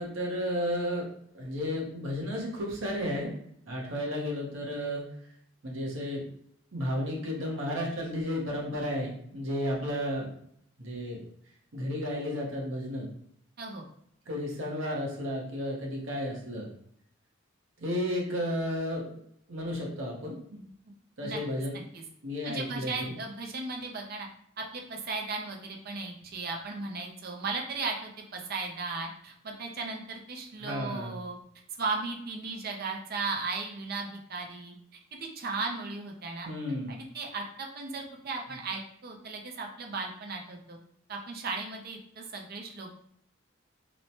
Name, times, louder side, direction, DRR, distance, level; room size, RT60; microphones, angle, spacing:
voice 1, 0.0-3.3 3.7-5.0 5.6-6.3 6.7-10.3 10.8-11.2 11.7-13.1 14.3-16.7 17.8-19.1 19.5-20.6 21.2-21.9 22.2-23.1 30.6-31.1 36.4-37.0, equal, 70° right, -2 dB, 0.8 m, -33 dB
voice 2, 22.4-24.3 24.6-31.4 31.8-34.8 35.2-36.5 36.9-40.8 41.1-42.9, right 3 dB, 45° right, 1 dB, 0.5 m, -36 dB
3.0 x 2.1 x 2.7 m, 0.68 s
head